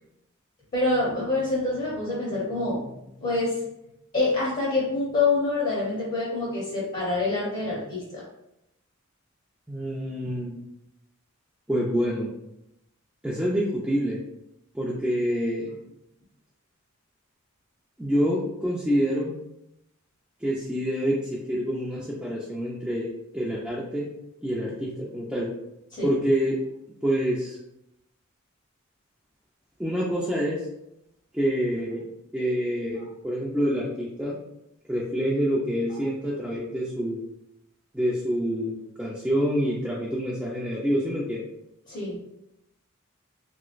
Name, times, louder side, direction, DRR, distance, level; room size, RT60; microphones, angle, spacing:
voice 1, 0.7-3.6 4.1-8.2 25.9-26.1 35.9-36.0 41.9-42.2, left 3 dB, 40° left, -5 dB, 0.8 m, -26 dB
voice 2, 9.7-10.6 11.7-12.3 13.2-14.2 14.7-15.7 18.0-19.3 20.4-24.1 24.4-25.5 26.0-26.6 27.0-27.6 29.8-30.7 31.3-32.0 32.3-34.4 34.9-37.2 37.9-41.4, equal, 5° right, -6 dB, 0.4 m, -27 dB
3.0 x 2.9 x 2.4 m, 0.84 s
head